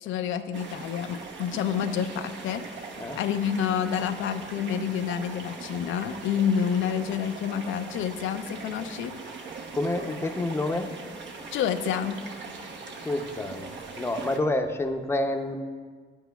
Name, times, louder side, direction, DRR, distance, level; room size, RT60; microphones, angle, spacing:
voice 1, 0.0-9.2 11.5-12.2, left 8 dB, 80° left, 8 dB, 0.4 m, -29 dB
sound 1, 0.5-14.4, right 4 dB, 65° right, 0.9 m, -40 dB
voice 2, 9.7-10.9 13.0-13.7 14.0-15.6, left 2 dB, 10° left, 5 dB, 0.6 m, -28 dB
10.5 x 8.1 x 2.3 m, 1.5 s
cardioid pair, 90°, 20 cm